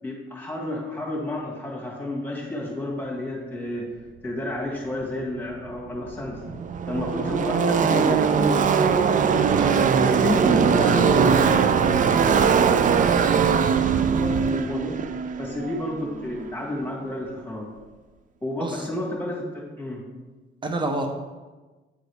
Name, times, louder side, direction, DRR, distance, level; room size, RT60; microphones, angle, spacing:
voice 1, 0.0-3.9 4.2-6.6 6.9-9.4 10.0-13.1 14.2-15.0 15.4-17.7 18.4-20.0, left 1 dB, 10° left, -4 dB, 1.9 m, -31 dB
Car passing by / Race car auto racing, 5.7-5.8 6.0-16.5, right 6 dB, 40° right, 0.4 m, -21 dB
voice 2, 20.6-21.1, right 2 dB, 25° right, 4 dB, 0.9 m, -28 dB
9.4 x 3.8 x 3.5 m, 1.2 s
cardioid pair, 90°, 20 cm